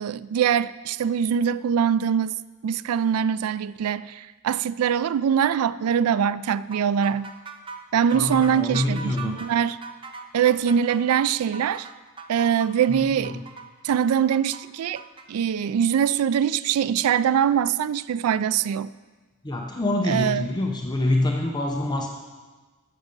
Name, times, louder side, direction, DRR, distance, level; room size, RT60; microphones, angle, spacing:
voice 1, 0.0-2.3 2.6-7.3 7.9-9.8 10.3-11.9 12.3-13.4 13.8-15.0 15.3-18.9 20.1-20.5, right 8 dB, 80° right, 0.3 m, -23 dB
sound 1, 6.7-15.3, right 4 dB, 20° right, 0.6 m, -40 dB
voice 2, 8.1-9.4 12.9-13.4 19.4-22.1, left 1 dB, 20° left, 0.7 m, -26 dB
14.0 x 6.5 x 5.3 m
head